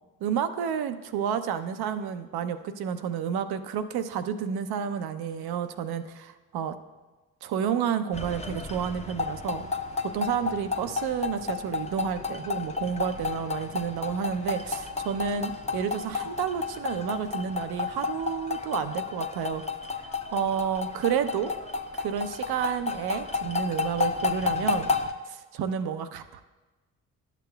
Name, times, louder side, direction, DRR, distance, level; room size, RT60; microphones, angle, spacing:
voice 1, 0.2-6.7 7.4-9.7 10.1-19.6 20.0-21.5 21.9-24.9 25.3-26.4, right 8 dB, 60° right, 10 dB, 0.7 m, -30 dB
sound 1, 8.1-25.1, left 4 dB, 15° left, 0.7 m, -32 dB
12.0 x 7.0 x 2.3 m, 1.2 s
hypercardioid pair, 40°, 42 cm